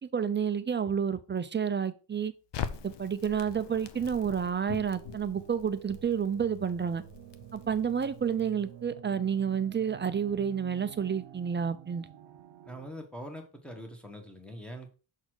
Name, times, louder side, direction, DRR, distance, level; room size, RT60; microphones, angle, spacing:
voice 1, 0.0-2.3 2.8-7.0 7.5-12.1, right 7 dB, 25° right, 0.4 m, -30 dB
Crackle, 2.5-8.7, left 8 dB, 60° left, 0.8 m, -43 dB
sound 1, 4.9-12.9, right 11 dB, 60° right, 0.7 m, -50 dB
voice 2, 12.7-15.0, equal, ahead, 1.2 m, -43 dB
6.3 x 4.1 x 4.6 m
wide cardioid pair, 150°, 49 cm